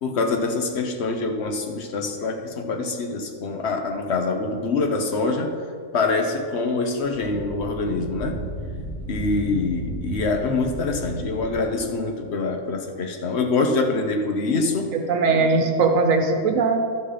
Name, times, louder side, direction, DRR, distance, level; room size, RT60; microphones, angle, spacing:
voice 1, 0.0-5.5 5.9-8.4 9.1-14.9 15.4-15.5, left 3 dB, 55° left, 4 dB, 1.2 m, -25 dB
Wind, 6.9-11.7, right 1 dB, 50° right, 1.6 m, -33 dB
voice 2, 14.9-16.8, right 4 dB, 75° right, 5 dB, 1.2 m, -20 dB
12.0 x 5.7 x 5.1 m, 2.2 s
omnidirectional pair, 1.4 m